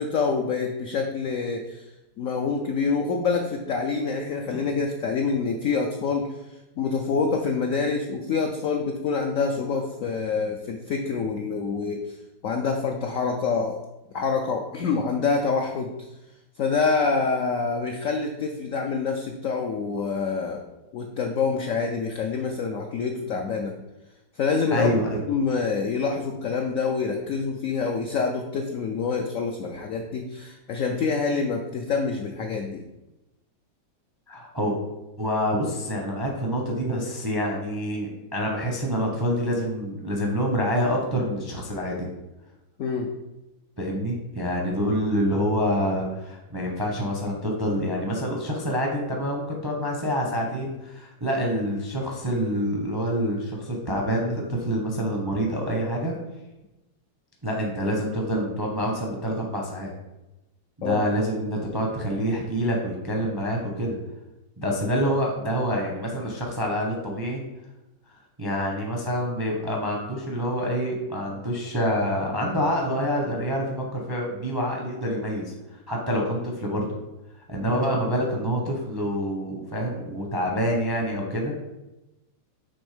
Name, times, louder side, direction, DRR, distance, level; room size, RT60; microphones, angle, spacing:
voice 1, 0.0-1.9 2.2-6.3 6.8-12.2 12.4-13.8 14.1-15.9 16.6-20.6 20.9-23.7 24.4-24.9 25.3-32.8 42.8-43.1 60.8-61.1, left 5 dB, 70° left, 3 dB, 0.7 m, -26 dB
voice 2, 24.7-25.2 34.3-34.8 35.2-42.1 43.8-56.1 57.4-59.9 60.8-64.0 64.6-67.4 68.4-75.5 75.9-76.9 77.5-81.5, equal, 25° right, -1 dB, 0.5 m, -27 dB
6.2 x 3.5 x 5.0 m, 0.98 s
omnidirectional pair, 2.0 m